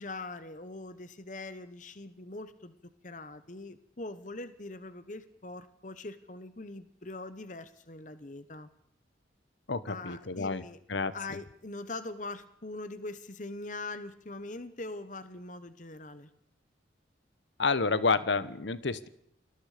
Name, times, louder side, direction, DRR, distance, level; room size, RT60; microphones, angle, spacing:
voice 1, 0.0-2.7 3.0-8.7 9.9-10.8 11.1-16.3, left 2 dB, 45° left, 12 dB, 1.2 m, -42 dB
voice 2, 9.7-10.6 10.9-11.1 17.6-19.1, left 4 dB, 75° left, 15 dB, 1.0 m, -29 dB
29.0 x 21.0 x 5.1 m, 0.71 s
head